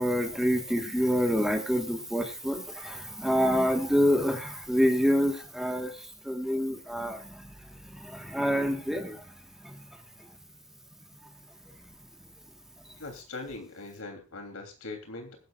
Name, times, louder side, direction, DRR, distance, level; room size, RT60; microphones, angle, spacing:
voice 1, 0.0-5.9 6.2-7.4 8.0-9.2 9.6-9.8, equal, ahead, 4 dB, 1.4 m, -27 dB
voice 2, 13.0-15.4, left 3 dB, 85° left, 4 dB, 3.0 m, -41 dB
21.0 x 11.0 x 2.4 m, 0.32 s
head